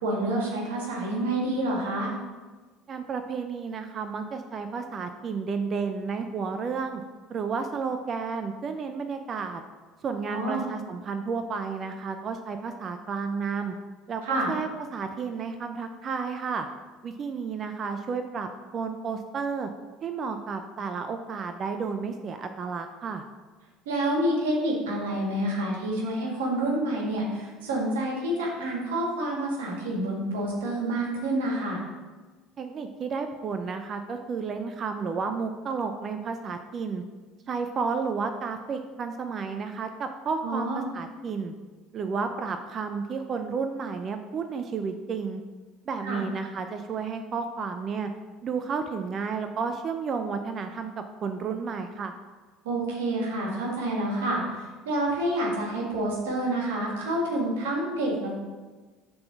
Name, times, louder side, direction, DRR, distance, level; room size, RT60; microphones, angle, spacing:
voice 1, 0.0-2.1 10.3-10.7 14.2-14.5 23.9-31.8 40.4-40.8 46.0-46.2 52.6-58.3, right 1 dB, 85° right, -2 dB, 1.8 m, -28 dB
voice 2, 2.9-7.0 7.3-9.6 10.0-13.7 14.1-16.7 17.0-18.5 18.7-19.7 20.0-23.2 32.6-37.0 37.5-41.5 41.9-45.4 45.9-48.1 48.4-52.1, right 5 dB, 45° right, 7 dB, 0.5 m, -32 dB
7.5 x 3.9 x 5.9 m, 1.3 s
hypercardioid pair, 75°, 0 cm